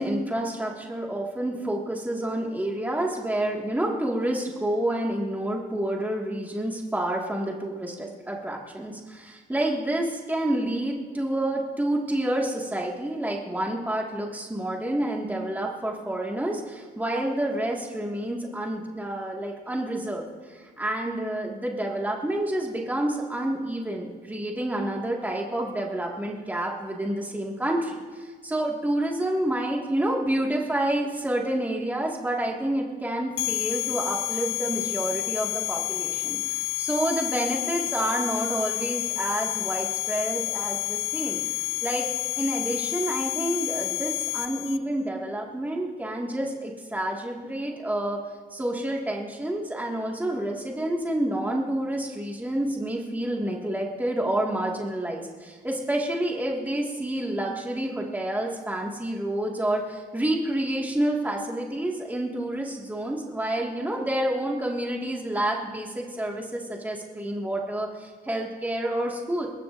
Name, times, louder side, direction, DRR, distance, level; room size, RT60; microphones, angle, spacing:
voice 1, 0.0-41.4 41.8-42.0 42.4-48.2 48.5-69.5, right 1 dB, 10° right, -2 dB, 2.0 m, -29 dB
sound 1, 33.4-44.8, left 19 dB, 90° left, 0.7 m, -29 dB
21.5 x 20.5 x 2.6 m, 1.5 s
cardioid pair, 90°, 20 cm